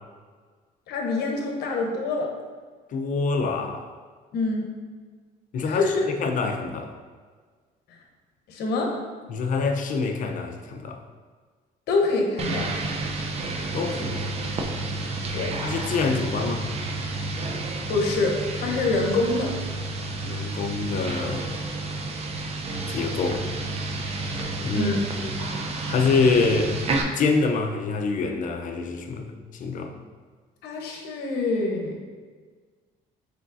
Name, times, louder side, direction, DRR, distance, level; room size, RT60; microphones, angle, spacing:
voice 1, 0.9-2.3 4.3-4.7 5.6-6.1 8.5-8.9 11.9-12.7 15.3-15.5 17.9-19.6 24.7-25.0 30.6-32.0, left 3 dB, 75° left, 1 dB, 0.9 m, -25 dB
voice 2, 2.9-3.9 5.5-5.8 6.2-6.9 9.3-11.0 13.7-14.3 15.6-16.7 20.2-21.5 22.9-23.5 24.6-24.9 25.2-25.4 25.9-26.8 27.1-29.9, left 4 dB, 50° left, 4 dB, 0.5 m, -26 dB
sound 1, 12.4-27.0, right 2 dB, 40° right, 0.5 m, -30 dB
5.0 x 4.0 x 2.5 m, 1.5 s
cardioid pair, 110°, 17 cm